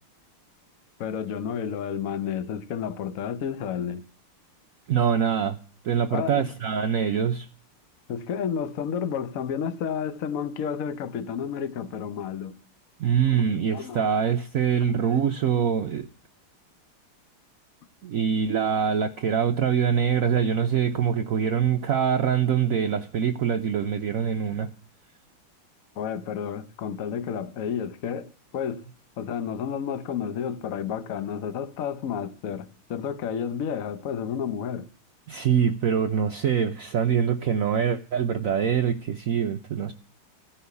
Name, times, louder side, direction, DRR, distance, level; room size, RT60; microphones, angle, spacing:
voice 1, 1.0-4.0 6.1-6.5 8.1-12.6 13.7-14.1 15.1-15.3 26.0-28.8 29.2-34.9, left 7 dB, 55° left, 1.0 m, -31 dB
voice 2, 4.9-5.6 5.8-7.5 13.0-16.1 18.0-24.7 35.3-39.9, right 8 dB, 75° right, 0.7 m, -24 dB
14.5 x 5.8 x 8.2 m
omnidirectional pair, 2.3 m